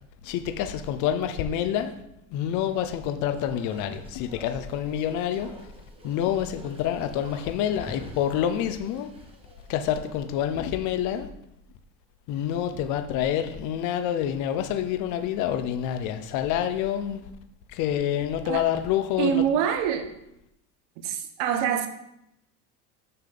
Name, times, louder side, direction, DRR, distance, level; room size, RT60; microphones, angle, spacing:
voice 1, 0.2-2.0 2.3-5.5 6.0-9.1 9.7-11.3 12.3-17.2 17.7-19.4, left 10 dB, 50° left, 0.7 m, -27 dB
Bark, 3.0-10.5 10.8-10.9, right 1 dB, 15° right, 1.2 m, -48 dB
voice 2, 19.2-20.1 21.0-21.9, right 9 dB, 70° right, 1.1 m, -25 dB
6.7 x 6.7 x 3.8 m
cardioid pair, 140°, 38 cm